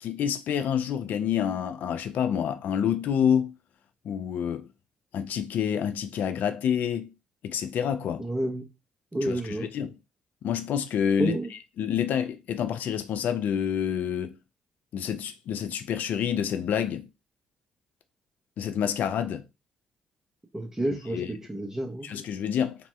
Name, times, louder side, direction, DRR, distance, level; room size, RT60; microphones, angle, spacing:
voice 1, 0.0-3.5 4.0-4.7 5.1-7.1 7.4-8.2 9.2-9.4 9.7-9.9 10.4-11.4 11.8-14.4 14.9-17.1 18.6-19.4 21.1-21.3 22.0-22.7, left 8 dB, 60° left, 0.4 m, -27 dB
voice 2, 8.2-8.7 9.1-9.7 11.2-11.5 20.5-22.1, right 1 dB, 15° right, 0.8 m, -30 dB
2.9 x 2.1 x 3.1 m
hypercardioid pair, 45°, 3 cm